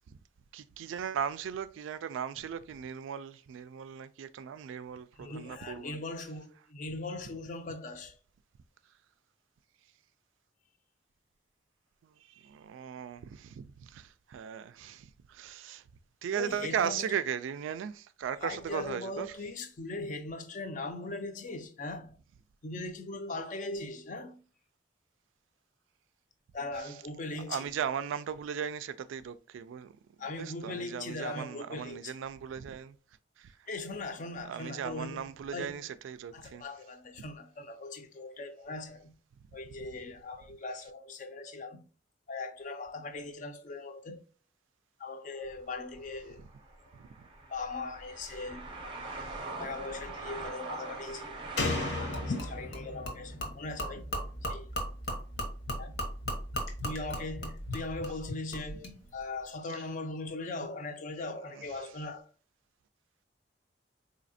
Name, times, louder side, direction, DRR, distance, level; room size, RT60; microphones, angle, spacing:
voice 1, 0.5-6.0 12.0-15.8 16.2-19.4 26.8-27.0 27.5-29.9 30.4-33.0 33.4-33.6 34.3-36.6 39.7-40.0 47.0-47.1 49.0-49.4 59.7-59.8 61.6-61.7, right 8 dB, 90° right, 0.3 m, -37 dB
voice 2, 5.2-8.2 16.3-17.1 18.4-22.2 22.6-24.4 26.5-27.7 30.2-32.1 33.7-35.2 35.5-35.7 36.3-39.1 39.5-41.9 42.3-44.2 45.0-46.4 46.8-46.9 47.5-49.1 49.6-51.4 52.1-54.1 54.4-54.7 55.8-56.0 56.8-62.3, left 2 dB, 40° left, 0.4 m, -40 dB
sound 1, 45.4-52.6, right 3 dB, 25° right, 0.6 m, -42 dB
Slam, 51.6-55.0 55.3-55.4, left 3 dB, 60° left, 0.8 m, -36 dB
Gurgling / Liquid, 52.1-59.0, left 1 dB, 75° left, 1.1 m, -37 dB
4.1 x 2.7 x 2.6 m
head